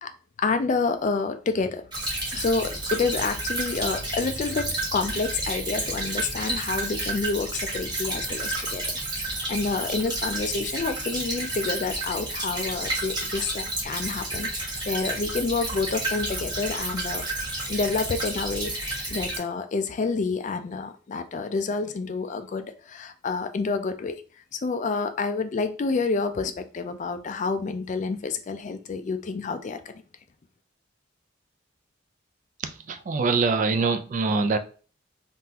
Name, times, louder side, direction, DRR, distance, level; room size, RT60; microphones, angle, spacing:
voice 1, 0.4-1.8 2.3-8.8 9.1-17.2 17.7-24.2 24.5-29.8, left 4 dB, 40° left, 9 dB, 0.3 m, -28 dB
Stream / Trickle dribble, 1.9-19.4, right 2 dB, 20° right, 1.2 m, -31 dB
voice 2, 32.6-34.6, right 4 dB, 40° right, 9 dB, 0.3 m, -24 dB
3.7 x 2.5 x 2.8 m, 0.37 s
head